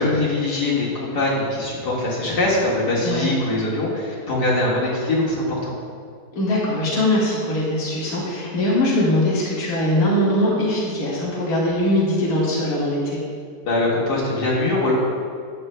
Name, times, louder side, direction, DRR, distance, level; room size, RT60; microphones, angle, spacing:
voice 1, 0.0-5.8 13.6-14.9, left 2 dB, 80° left, -6 dB, 2.4 m, -22 dB
voice 2, 6.3-13.2, left 1 dB, 60° left, -7 dB, 2.1 m, -21 dB
12.0 x 9.1 x 2.2 m, 2.2 s
omnidirectional pair, 1.8 m